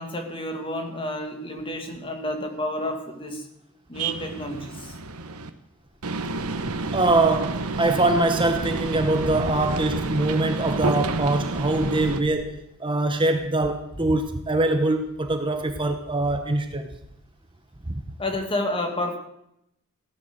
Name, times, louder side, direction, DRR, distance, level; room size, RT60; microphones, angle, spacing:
voice 1, 0.0-3.5 3.9-5.0 18.2-19.2, left 1 dB, 25° left, 4 dB, 2.0 m, -30 dB
sound 1, 3.9-5.5 6.0-12.2, right 3 dB, 80° right, 1.2 m, -30 dB
sound 2, 5.8-12.3, equal, 85° left, 7.6 m, -43 dB
voice 2, 6.9-12.5 12.8-17.0 17.9-18.0, right 2 dB, 20° right, 6 dB, 0.9 m, -23 dB
16.5 x 11.5 x 6.6 m, 0.80 s
head